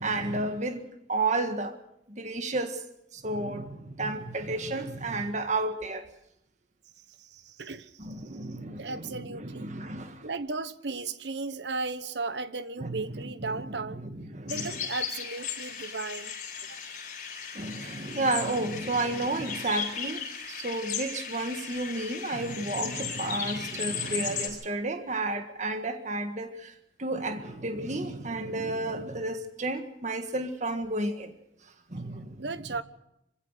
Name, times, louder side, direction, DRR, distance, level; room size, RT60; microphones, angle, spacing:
voice 1, 0.0-1.8 2.1-2.8 3.1-6.1 8.0-10.3 12.8-14.8 17.5-26.7 27.0-31.3 31.9-32.7, right 2 dB, 40° right, 1.7 m, -32 dB
voice 2, 7.2-8.1 8.8-9.7 10.2-14.0 14.5-16.3 16.7-16.8 32.4-32.8, right 3 dB, 75° right, 1.1 m, -35 dB
sound 1, 14.5-24.5, left 7 dB, 45° left, 7.4 m, -36 dB
26.0 x 16.5 x 6.6 m
head